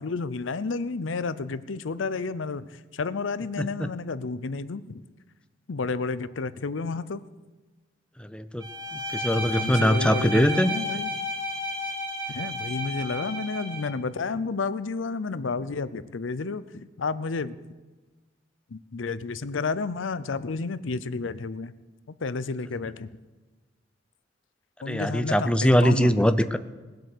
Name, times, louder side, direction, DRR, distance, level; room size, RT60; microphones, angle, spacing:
voice 1, 0.0-5.0 5.7-7.2 9.3-11.1 12.3-17.6 18.7-21.7 22.2-23.2 24.8-26.3, left 4 dB, 85° left, 16 dB, 0.6 m, -31 dB
voice 2, 3.6-3.9 8.2-8.6 9.1-10.7 24.9-26.6, equal, 5° left, 11 dB, 0.5 m, -22 dB
Bowed string instrument, 8.6-14.0, equal, 25° right, 3.4 m, -33 dB
19.5 x 7.9 x 6.7 m, 1.3 s
head